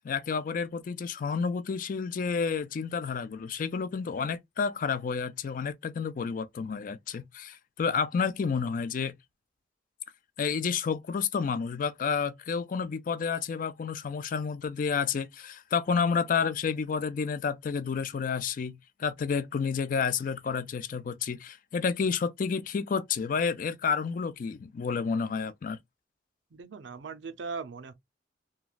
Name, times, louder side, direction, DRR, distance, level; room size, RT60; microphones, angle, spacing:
voice 1, 0.0-9.2 10.4-25.8, left 6 dB, 50° left, 0.4 m, -30 dB
voice 2, 26.5-27.9, right 4 dB, 85° right, 0.5 m, -39 dB
3.0 x 2.3 x 2.3 m
head